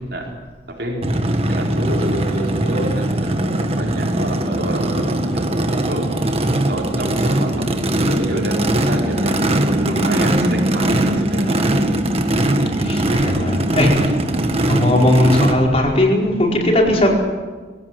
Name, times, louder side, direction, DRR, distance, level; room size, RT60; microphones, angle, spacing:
voice 1, 0.7-1.1 1.5-6.4 6.7-11.7, right 1 dB, 60° right, -1 dB, 5.0 m, -28 dB
Race car auto racing / Idling / Accelerating revving vroom, 1.0-15.5, right 1 dB, 30° right, 1.6 m, -20 dB
voice 2, 12.8-14.2 14.7-17.1, left 1 dB, 35° left, -1 dB, 4.7 m, -17 dB
22.0 x 16.5 x 9.3 m, 1.4 s
head